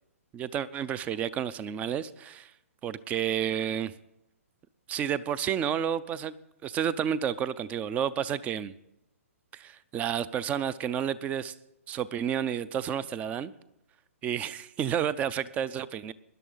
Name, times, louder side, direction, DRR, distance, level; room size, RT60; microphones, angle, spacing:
voice 1, 0.3-2.5 2.8-3.9 4.9-6.4 6.6-8.7 9.5-11.5 11.9-13.5 14.2-16.1, right 9 dB, 20° right, 19 dB, 0.4 m, -30 dB
19.0 x 11.0 x 4.0 m, 0.85 s
hypercardioid pair, 130°, 8 cm